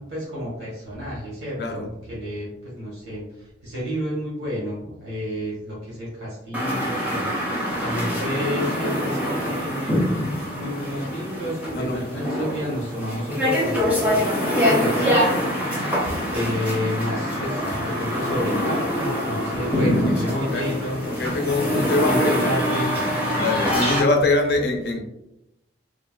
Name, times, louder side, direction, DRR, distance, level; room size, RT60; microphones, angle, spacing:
voice 1, 0.0-10.0 10.4-14.2 14.6-15.5 16.3-21.0 21.6-23.1, equal, 85° right, -7 dB, 1.1 m, -30 dB
sound 1, 6.5-24.0, equal, 10° right, 0.5 m, -24 dB
voice 2, 19.9-20.6 21.0-22.3 23.3-25.0, left 2 dB, 55° left, 3 dB, 0.4 m, -23 dB
3.3 x 2.1 x 2.2 m, 0.87 s
head